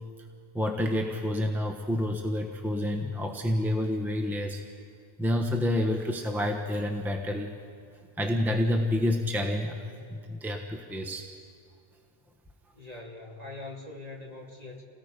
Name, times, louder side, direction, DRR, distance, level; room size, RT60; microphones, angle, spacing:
voice 1, 0.5-4.6 5.2-7.5 8.2-9.8 10.1-11.3, left 1 dB, ahead, 2 dB, 1.2 m, -28 dB
voice 2, 12.7-14.8, left 2 dB, 35° right, -1 dB, 2.7 m, -42 dB
29.5 x 18.5 x 5.2 m, 2.3 s
omnidirectional pair, 1.1 m